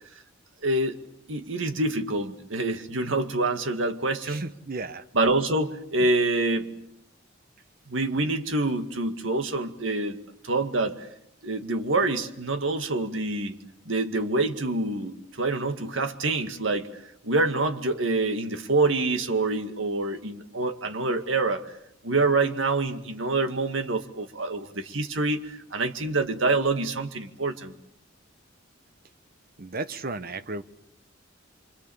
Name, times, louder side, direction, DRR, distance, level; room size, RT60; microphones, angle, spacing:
voice 1, 0.6-1.0 1.3-4.4 5.1-6.7 7.9-10.2 10.4-11.1 11.4-13.6 13.9-21.6 22.0-27.7, right 2 dB, 75° right, 7 dB, 2.1 m, -26 dB
voice 2, 4.3-5.0 29.6-30.6, right 3 dB, 50° right, 12 dB, 1.2 m, -34 dB
26.5 x 25.0 x 7.2 m, 0.76 s
head